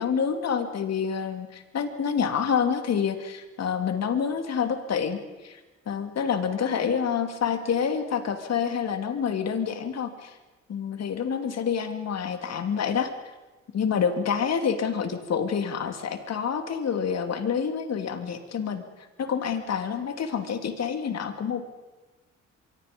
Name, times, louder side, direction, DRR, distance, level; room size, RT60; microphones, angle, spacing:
voice 1, 0.0-5.2 5.4-5.6 5.9-10.4 10.7-13.1 13.7-18.8 19.2-21.6, left 7 dB, 60° left, 7 dB, 3.0 m, -27 dB
24.5 x 24.5 x 5.4 m, 1.1 s
cardioid pair, 90°, 30 cm